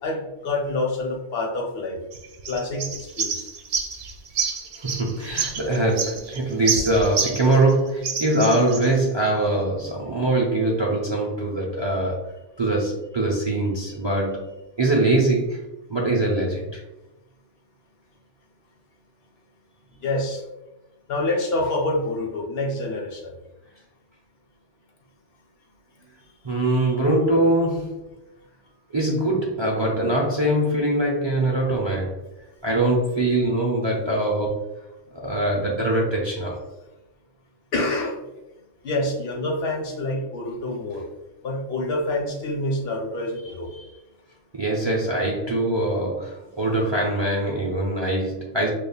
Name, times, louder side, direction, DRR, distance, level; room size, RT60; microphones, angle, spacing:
voice 1, 0.0-2.0 2.5-3.5 20.0-20.4 21.1-23.3 37.7-38.2 38.8-41.1 41.4-43.7, left 2 dB, 60° left, 1 dB, 0.8 m, -27 dB
sound 1, 2.1-7.7 8.0-8.9, right 5 dB, 75° right, 0.9 m, -28 dB
voice 2, 4.8-12.3 12.6-14.5 14.8-15.6 15.9-16.8 26.4-28.0 28.9-32.1 32.6-34.7 35.1-36.6 43.4-43.9 44.5-48.7, right 1 dB, 40° right, -3 dB, 0.4 m, -23 dB
5.2 x 2.3 x 2.3 m, 0.99 s
omnidirectional pair, 1.3 m